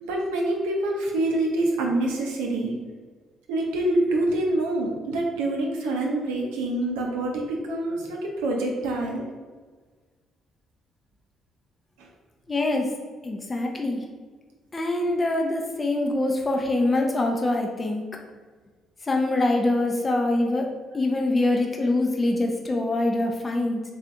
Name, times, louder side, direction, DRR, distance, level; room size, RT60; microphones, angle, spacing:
voice 1, 0.0-2.7 3.5-9.2 12.0-12.1, right 1 dB, 70° right, 0 dB, 0.7 m, -26 dB
voice 2, 12.5-12.9 13.2-14.0 14.7-18.0 19.0-20.7 20.9-23.8, left 2 dB, 30° left, 1 dB, 0.6 m, -24 dB
3.7 x 3.6 x 3.4 m, 1.4 s
figure-of-eight pair, 45°, 0 cm